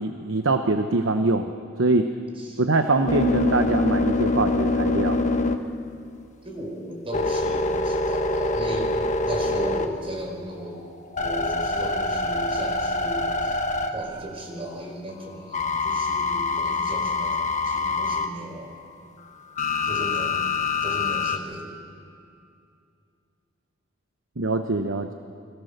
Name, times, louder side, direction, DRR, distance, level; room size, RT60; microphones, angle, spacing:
voice 1, 0.0-1.5 1.8-2.1 2.6-5.2 24.4-25.1, right 2 dB, 70° right, 7 dB, 1.0 m, -23 dB
sound 1, 2.7-6.3 6.7-10.2 10.7-14.4 15.5-18.3 19.6-21.4, left 3 dB, 35° left, 1.3 m, -25 dB
voice 2, 6.4-9.0 9.2-10.8 11.2-13.6 13.9-18.7 19.8-20.4 20.8-21.8, right 1 dB, 30° right, 1 dB, 4.9 m, -36 dB
29.0 x 22.0 x 6.7 m, 2.5 s
head